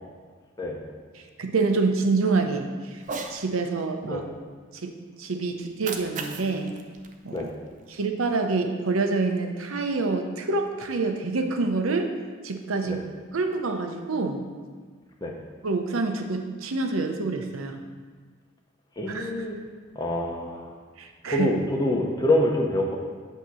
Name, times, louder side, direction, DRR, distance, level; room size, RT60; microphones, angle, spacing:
voice 1, 1.1-3.0 3.3-4.2 4.7-6.8 7.2-7.5 7.9-12.1 12.4-13.0 13.3-14.4 15.6-17.8 19.1-19.3 21.0-21.5, right 3 dB, 85° right, 5 dB, 0.7 m, -27 dB
Cat, 3.0-3.4 5.6-8.0, right 4 dB, 40° right, 0.4 m, -38 dB
voice 2, 19.0-19.6 19.9-20.7 21.3-23.0, left 1 dB, 20° left, 0 dB, 0.8 m, -25 dB
8.2 x 2.9 x 6.2 m, 1.5 s
head